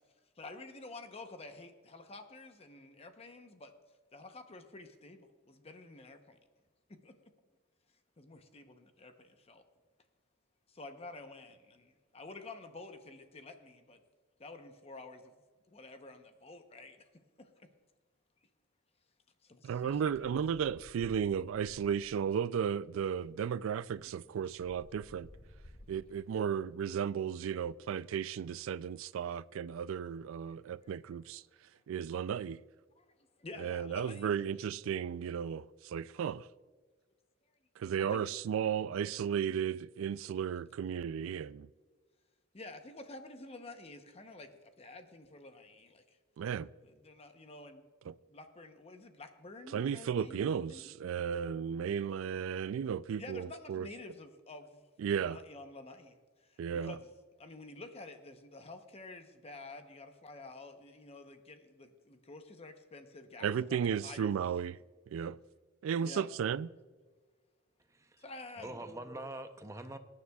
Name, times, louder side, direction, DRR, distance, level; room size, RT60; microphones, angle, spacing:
voice 1, 0.4-3.7 4.1-6.2 7.0-7.1 8.2-9.1 9.5-9.6 10.8-11.8 12.1-14.0 14.4-15.3 15.7-17.0 19.5-20.4 33.4-34.3 38.0-38.2 42.5-44.5 44.8-46.0 46.8-47.8 48.3-50.8 53.2-54.7 55.2-56.1 56.7-57.0 57.4-64.3 66.0-66.3 68.2-68.8, left 2 dB, 30° left, 0.8 m, -49 dB
voice 2, 19.7-25.3 25.9-31.4 31.9-32.6 33.6-36.5 37.8-41.7 46.4-46.7 48.1-48.2 49.7-53.9 55.0-55.4 56.6-57.0 63.4-64.8 65.1-65.4 65.8-66.7, right 8 dB, 75° right, 0.3 m, -34 dB
sound 1, 19.8-22.4 23.3-23.4 23.7-26.4, left 1 dB, 80° left, 2.8 m, -57 dB
voice 3, 67.8-70.0, right 1 dB, 15° right, 0.6 m, -45 dB
21.5 x 9.7 x 2.3 m
head